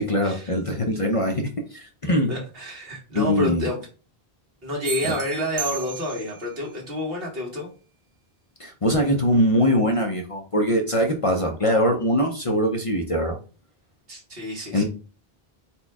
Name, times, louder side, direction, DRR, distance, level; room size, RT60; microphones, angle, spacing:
voice 1, 0.0-2.4 3.1-3.7 5.1-5.2 8.6-13.4 14.7-14.8, equal, 40° left, 2 dB, 0.6 m, -22 dB
voice 2, 2.3-3.8 4.6-7.7 14.1-14.8, left 1 dB, 65° right, -2 dB, 1.7 m, -29 dB
sound 1, 4.8-6.5, right 7 dB, 45° right, 0.6 m, -34 dB
4.2 x 2.3 x 4.6 m, 0.36 s
omnidirectional pair, 1.0 m